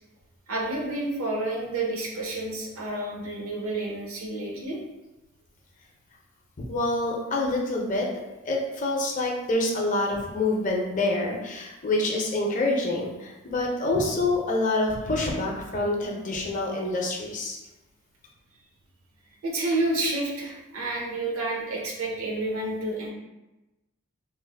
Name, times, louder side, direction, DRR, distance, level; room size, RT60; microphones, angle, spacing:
voice 1, 0.5-4.8 19.4-23.1, right 2 dB, 80° right, -2 dB, 0.8 m, -29 dB
voice 2, 6.7-8.1 8.4-17.6, left 2 dB, 40° left, -1 dB, 0.5 m, -26 dB
3.2 x 2.0 x 3.3 m, 1.0 s
head